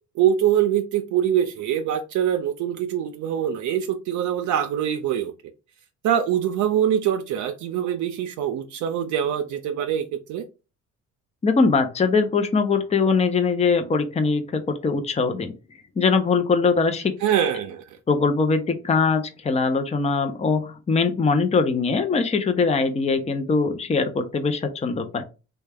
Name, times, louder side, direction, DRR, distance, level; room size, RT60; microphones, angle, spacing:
voice 1, 0.2-5.3 6.0-10.4 17.2-17.8, right 10 dB, 75° right, 0.5 m, -23 dB
voice 2, 11.4-15.5 16.0-17.2 18.1-25.2, left 4 dB, 20° left, 0.5 m, -22 dB
3.3 x 2.2 x 3.4 m
cardioid pair, 90°, 30 cm